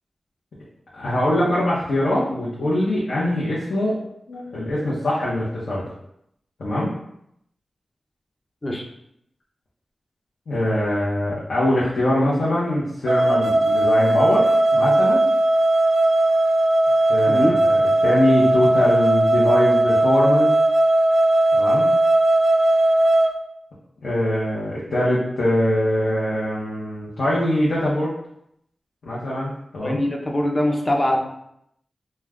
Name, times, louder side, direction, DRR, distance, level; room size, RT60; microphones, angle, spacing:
voice 1, 0.9-4.0 4.3-5.9 6.6-6.9 10.5-15.2 17.1-20.5 21.5-21.9 24.0-28.1 29.0-30.0, left 1 dB, 75° left, -8 dB, 0.7 m, -22 dB
sound 1, 13.1-23.3, right 1 dB, 60° right, 0.3 m, -18 dB
voice 2, 29.8-31.2, left 1 dB, 25° left, 1 dB, 0.5 m, -22 dB
2.3 x 2.1 x 3.4 m, 0.75 s
wide cardioid pair, 100°, 0 cm